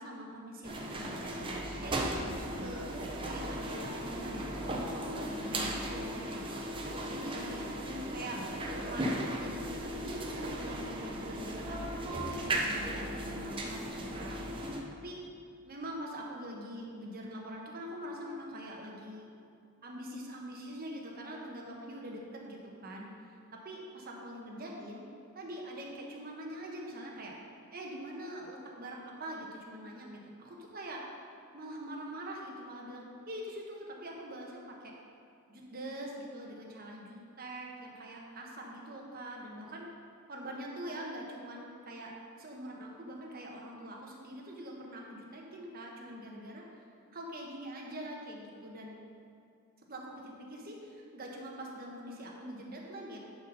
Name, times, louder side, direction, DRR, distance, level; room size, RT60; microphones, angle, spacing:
voice 1, 0.0-1.4 1.8-2.9 3.2-6.6 7.0-7.7 8.1-8.4 8.8-14.4 15.0-15.2 15.7-19.3 19.8-25.0 25.3-27.3 27.7-31.0 31.5-34.9 35.5-39.9 40.3-46.6 47.1-49.0 49.9-53.2, right 1 dB, 40° right, -1 dB, 1.2 m, -44 dB
sound 1, 0.6-14.8, right 1 dB, 25° right, 0.7 m, -36 dB
10.5 x 4.3 x 5.4 m, 2.4 s
head